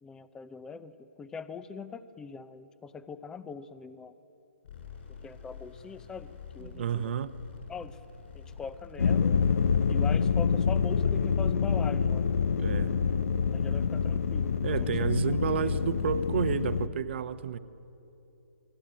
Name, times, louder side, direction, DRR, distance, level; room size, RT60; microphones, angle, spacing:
voice 1, 0.0-4.1 5.2-7.1 7.7-8.0 8.3-9.4 9.9-12.3 13.5-14.7 15.0-15.1 15.6-15.7, left 5 dB, 10° left, 14 dB, 0.6 m, -42 dB
sound 1, 4.6-10.3, left 6 dB, 50° left, 7.7 m, -48 dB
voice 2, 6.6-7.3 12.6-12.9 14.6-17.6, right 8 dB, 50° right, 13 dB, 1.0 m, -31 dB
sound 2, 9.0-16.9, left 6 dB, 70° left, 0.9 m, -26 dB
28.5 x 21.0 x 9.0 m, 3.0 s
hypercardioid pair, 155°, 8 cm